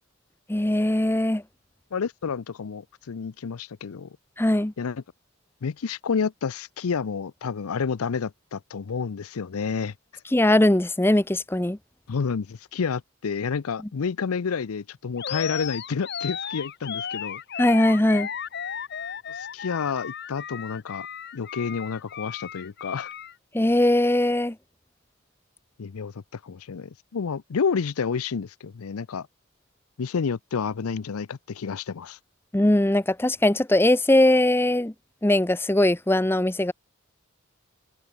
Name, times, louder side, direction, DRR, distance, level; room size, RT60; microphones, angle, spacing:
voice 1, 0.5-1.4 4.4-4.7 10.3-11.8 17.6-18.3 23.5-24.6 32.5-34.9 35.2-36.7, left 1 dB, 10° left, 0.6 m, -20 dB
voice 2, 1.9-4.1 4.8-5.0 5.6-9.9 12.1-17.4 19.4-21.1 21.3-23.1 25.8-29.3 30.0-32.2, left 5 dB, 85° left, 0.5 m, -29 dB
Animal, 15.2-23.3, left 7 dB, 50° left, 1.1 m, -35 dB
head